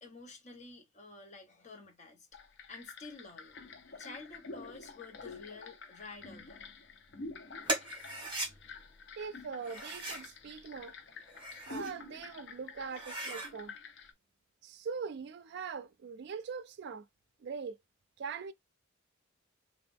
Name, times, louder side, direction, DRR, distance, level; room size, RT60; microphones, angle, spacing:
voice 1, 0.0-2.3 2.7-3.5 3.8-6.6, left 3 dB, 35° left, 1.1 m, -50 dB
sound 1, 2.3-14.1, left 3 dB, 60° left, 0.8 m, -49 dB
sound 2, 7.6-8.5 9.6-10.3 11.2-12.0 12.4-12.5 12.9-13.5, right 2 dB, 25° right, 1.3 m, -38 dB
voice 2, 9.2-11.0 11.7-13.7 14.6-17.1 17.4-17.8 18.2-18.5, right 5 dB, 55° right, 0.4 m, -41 dB
3.1 x 2.5 x 3.4 m
head